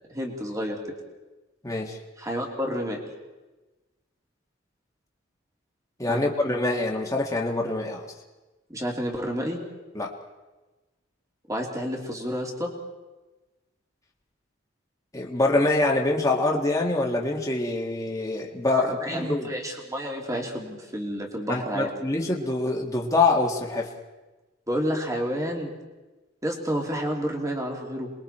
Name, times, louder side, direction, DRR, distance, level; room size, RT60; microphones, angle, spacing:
voice 1, 0.1-0.8 2.2-3.0 6.1-6.2 8.7-9.6 11.5-12.7 19.0-21.9 24.7-25.7 26.4-28.1, equal, 15° right, 1 dB, 3.0 m, -30 dB
voice 2, 1.6-2.0 6.0-8.1 9.9-10.1 15.1-19.5 21.5-23.9, left 2 dB, 15° left, -1 dB, 1.9 m, -25 dB
27.5 x 21.5 x 4.4 m, 1.2 s
head